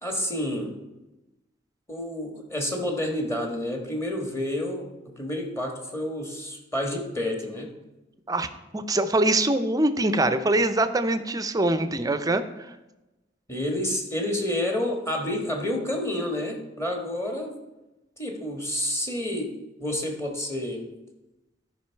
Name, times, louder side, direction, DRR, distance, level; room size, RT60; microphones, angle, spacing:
voice 1, 0.0-0.7 1.9-7.7 13.5-17.6 18.2-20.9, left 1 dB, 15° left, 1 dB, 1.4 m, -29 dB
voice 2, 8.7-12.7, right 2 dB, 20° right, 11 dB, 0.5 m, -23 dB
13.5 x 5.3 x 4.5 m, 1.0 s
head